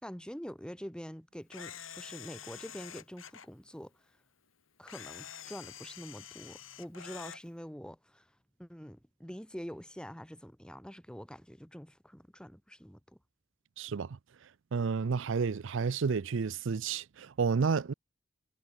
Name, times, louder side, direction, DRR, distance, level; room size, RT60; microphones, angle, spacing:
voice 1, 0.0-4.0 4.8-8.3 8.6-13.0, equal, 5° left, 2.6 m, -45 dB
Camera, 1.5-3.5 4.9-7.4, left 9 dB, 80° left, 7.1 m, -47 dB
voice 2, 13.8-14.2 14.7-17.9, right 5 dB, 65° right, 0.5 m, -31 dB
head